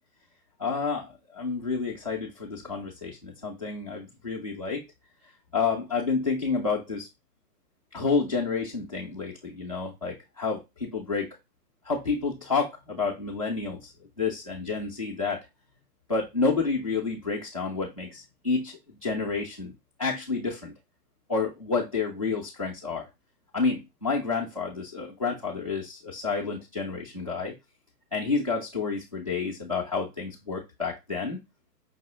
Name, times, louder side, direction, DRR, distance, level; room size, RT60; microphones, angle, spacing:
voice 1, 0.6-4.8 5.5-7.1 7.9-11.3 11.8-13.9 14.2-15.4 16.1-19.7 20.0-20.7 21.3-23.1 23.5-27.5 28.1-31.4, left 4 dB, 25° left, -5 dB, 0.4 m, -29 dB
5.5 x 2.6 x 3.6 m, 0.23 s
hypercardioid pair, 140°, 49 cm